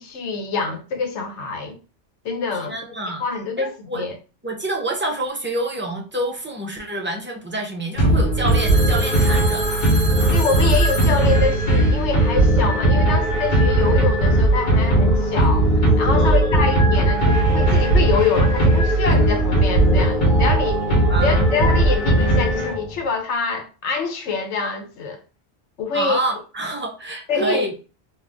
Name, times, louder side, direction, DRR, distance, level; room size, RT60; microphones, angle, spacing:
voice 1, 0.0-1.8 2.2-2.8 3.2-4.1 10.3-15.7 16.0-20.8 21.2-25.2 25.8-26.2 27.3-27.7, left 4 dB, 90° left, 1.0 m, -25 dB
voice 2, 2.7-3.2 3.6-4.0 4.4-9.7 16.1-16.6 21.1-21.4 25.9-27.7, right 1 dB, 20° right, 0.3 m, -27 dB
sound 1, 8.0-23.0, right 1 dB, 55° left, 1.1 m, -17 dB
Telephone, 8.5-12.7, right 1 dB, 35° right, 1.1 m, -32 dB
2.5 x 2.5 x 3.4 m
omnidirectional pair, 1.1 m